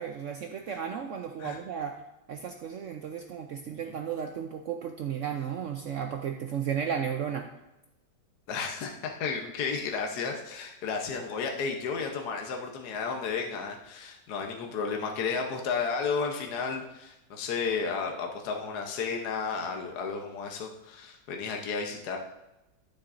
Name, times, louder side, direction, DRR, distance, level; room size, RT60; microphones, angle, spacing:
voice 1, 0.0-2.0 2.3-7.5, right 8 dB, 75° right, 4 dB, 0.7 m, -34 dB
voice 2, 8.5-22.2, left 5 dB, 65° left, 2 dB, 1.4 m, -33 dB
12.5 x 7.1 x 2.5 m, 0.95 s
omnidirectional pair, 1.9 m